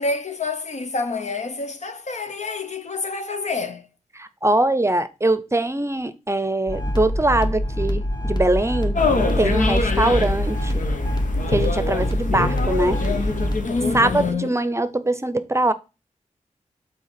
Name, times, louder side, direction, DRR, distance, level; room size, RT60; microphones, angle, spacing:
voice 1, 0.0-3.9 13.6-14.6, left 3 dB, 65° left, 0.9 m, -28 dB
voice 2, 4.2-9.0 9.4-10.9 11.5-13.0 13.9-15.7, right 2 dB, 20° right, 0.6 m, -22 dB
sound 1, 6.7-13.6, equal, 35° left, 1.4 m, -25 dB
sound 2, 8.9-14.3, left 3 dB, 85° left, 1.1 m, -24 dB
5.7 x 4.3 x 5.8 m
cardioid pair, 60°, 13 cm